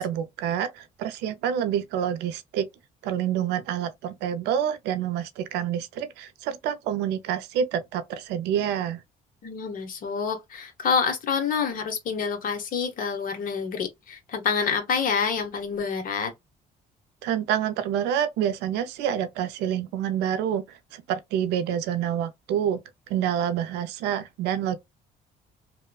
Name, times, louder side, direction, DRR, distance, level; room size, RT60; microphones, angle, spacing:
voice 1, 0.0-2.7 3.0-9.0 17.2-22.8 23.1-24.8, right 9 dB, 90° right, 0.5 m, -27 dB
voice 2, 9.4-16.3, left 6 dB, 55° left, 1.0 m, -27 dB
2.9 x 2.1 x 2.3 m
cardioid pair, 110°, 17 cm